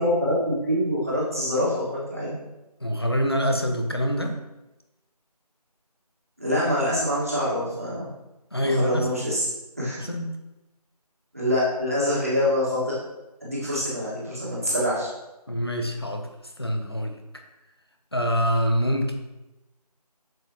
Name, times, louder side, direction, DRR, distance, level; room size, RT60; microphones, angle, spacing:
voice 1, 0.0-2.3 6.4-8.1 8.6-9.5 9.8-10.0 11.3-13.0 13.4-15.1, equal, 20° right, -7 dB, 1.9 m, -25 dB
voice 2, 2.8-4.3 8.5-9.1 10.0-10.3 13.6-13.8 15.5-16.3 16.6-17.4 18.1-19.1, equal, 40° left, 3 dB, 0.8 m, -25 dB
7.6 x 7.2 x 3.1 m, 0.99 s
figure-of-eight pair, 180°, 20 cm